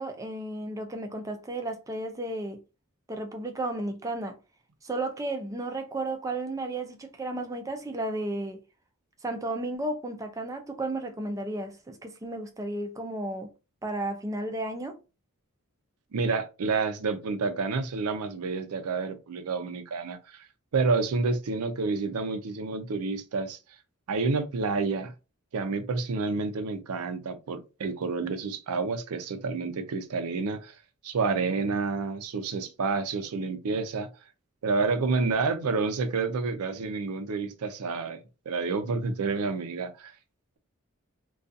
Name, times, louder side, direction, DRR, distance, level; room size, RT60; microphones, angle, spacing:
voice 1, 0.0-2.6 3.1-4.4 4.8-8.6 9.2-13.5 13.8-15.0, right 2 dB, 15° right, 0.3 m, -33 dB
voice 2, 16.1-20.4 20.7-23.6 24.1-25.1 25.5-30.7 31.0-34.1 34.6-38.2 38.5-40.1, right 4 dB, 85° right, 0.5 m, -29 dB
2.4 x 2.3 x 2.6 m
head